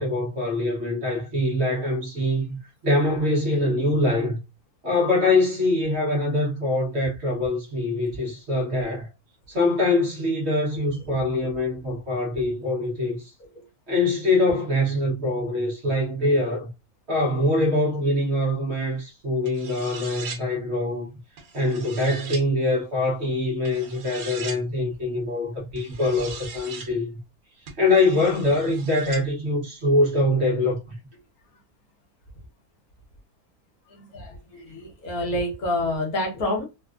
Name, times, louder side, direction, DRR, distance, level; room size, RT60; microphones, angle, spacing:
voice 1, 0.0-2.6 2.8-4.4 4.8-9.1 9.5-13.3 13.9-16.7 17.1-21.1 21.5-27.2 27.6-31.0, left 2 dB, 50° right, 1.1 m, -24 dB
voice 2, 11.0-11.5 13.4-13.6 33.9-36.7, left 1 dB, 80° left, 1.5 m, -29 dB
sound 1, 19.4-20.4 21.4-22.4 23.6-24.6 25.8-26.9 27.7-29.2, right 5 dB, 75° right, 1.2 m, -39 dB
3.4 x 2.3 x 2.4 m
omnidirectional pair, 1.5 m